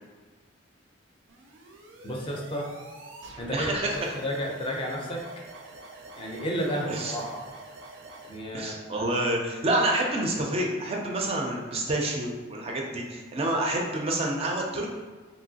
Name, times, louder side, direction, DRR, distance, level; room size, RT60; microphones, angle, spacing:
sound 1, 1.3-8.4, right 2 dB, 90° right, 0.5 m, -47 dB
voice 1, 2.0-2.7 3.4-3.7 4.2-5.2 6.2-7.4 8.2-9.1, equal, 30° left, -1 dB, 0.4 m, -32 dB
voice 2, 3.5-4.1 6.9-7.2 8.5-14.9, right 1 dB, 30° right, 0 dB, 0.4 m, -28 dB
2.9 x 2.7 x 2.7 m, 1.4 s
head